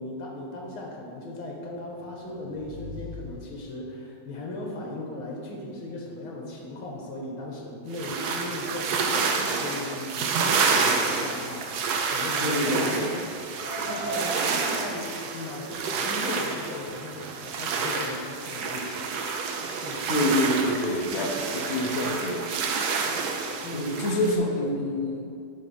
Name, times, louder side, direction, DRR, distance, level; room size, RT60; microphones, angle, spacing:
voice 1, 0.0-13.1 13.8-18.9 19.7-20.1 23.6-24.1 24.5-24.7, left 2 dB, 75° left, -1 dB, 2.1 m, -37 dB
sound 1, 1.8-4.1, left 3 dB, ahead, 0.7 m, -44 dB
sound 2, 7.9-24.3, right 5 dB, 70° right, 1.0 m, -29 dB
voice 2, 12.4-13.1 20.1-22.4 23.7-25.3, left 1 dB, 55° left, 0 dB, 0.7 m, -27 dB
Car, 13.1-14.7, right 2 dB, 30° right, 1.2 m, -37 dB
8.6 x 3.4 x 6.3 m, 2.4 s
omnidirectional pair, 2.3 m